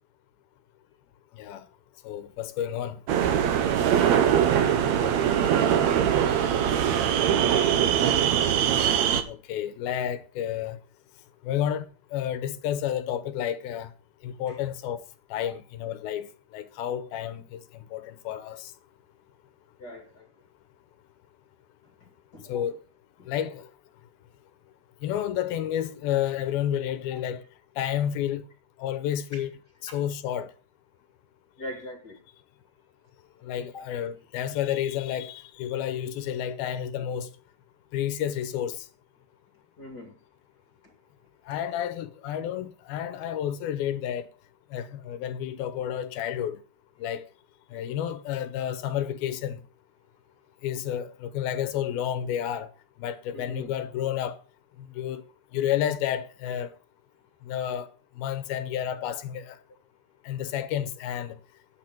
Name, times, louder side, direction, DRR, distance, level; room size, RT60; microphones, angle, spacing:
voice 1, 1.3-1.7 2.0-3.0 9.3-10.8 11.4-11.8 12.1-13.9 14.2-15.0 15.3-16.3 16.5-18.7 22.5-22.8 23.3-23.7 25.0-27.4 27.8-28.4 28.8-29.5 29.9-30.5 33.4-37.3 37.9-38.9 41.5-44.3 44.7-46.6 47.0-47.3 47.7-49.6 50.6-52.7 53.0-54.4 55.0-55.2 55.5-56.7 57.4-57.9 58.2-59.6 60.3-61.4, left 10 dB, 75° left, 2.6 m, -30 dB
sound 1, 3.1-9.2, right 9 dB, 85° right, 1.5 m, -22 dB
voice 2, 4.2-5.8 6.5-6.9 8.5-8.7 14.5-14.6 15.5-15.6 19.8-20.3 22.0-22.5 23.2-23.3 29.3-29.4 31.6-32.2 33.2-33.9 39.8-40.1 40.8-40.9 53.3-53.7, left 2 dB, 35° left, 1.9 m, -43 dB
10.5 x 8.4 x 5.9 m
omnidirectional pair, 4.6 m